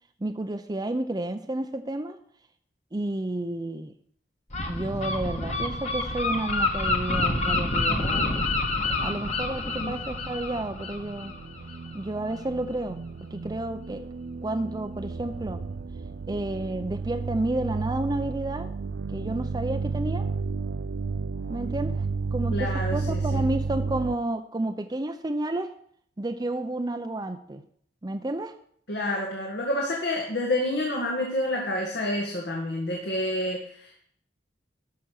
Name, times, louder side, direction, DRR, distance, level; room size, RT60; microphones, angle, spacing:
voice 1, 0.2-2.2 2.9-3.9 4.7-8.4 9.0-11.3 11.9-13.0 13.3-14.0 14.4-15.6 16.3-18.7 19.1-20.2 21.5-22.0 22.3-25.7 26.2-27.6 28.0-28.5, right 1 dB, 25° right, 6 dB, 0.6 m, -31 dB
Gull seagull, 4.5-12.0, left 2 dB, 40° left, 1.6 m, -28 dB
sound 1, 7.8-24.2, right 4 dB, 90° right, 0.5 m, -33 dB
voice 2, 22.5-23.4 28.9-34.0, left 1 dB, 75° left, -1 dB, 2.0 m, -29 dB
12.5 x 5.9 x 6.5 m, 0.63 s
head